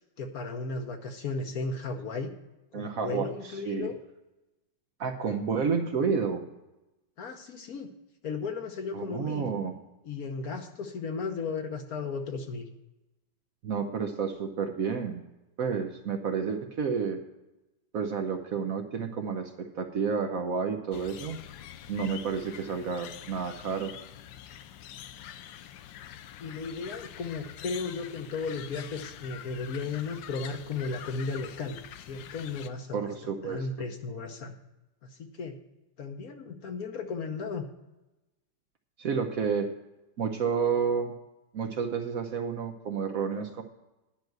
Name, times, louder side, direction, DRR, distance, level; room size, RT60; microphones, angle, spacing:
voice 1, 0.2-2.3 2.7-4.0 7.2-7.9 8.2-9.5 10.0-12.7 26.4-31.8 32.1-34.6 35.0-35.5 36.0-37.7, left 4 dB, 55° left, 5 dB, 1.2 m, -35 dB
voice 2, 2.7-3.9 5.0-6.5 8.9-9.7 13.6-15.2 15.6-17.2 17.9-21.4 21.9-23.9 32.9-33.7 39.0-39.7 40.2-41.1 41.5-43.6, right 6 dB, 60° right, 5 dB, 1.0 m, -30 dB
sound 1, 20.9-32.7, left 10 dB, 80° left, 1.3 m, -45 dB
10.5 x 5.9 x 7.7 m, 0.99 s
omnidirectional pair, 2.0 m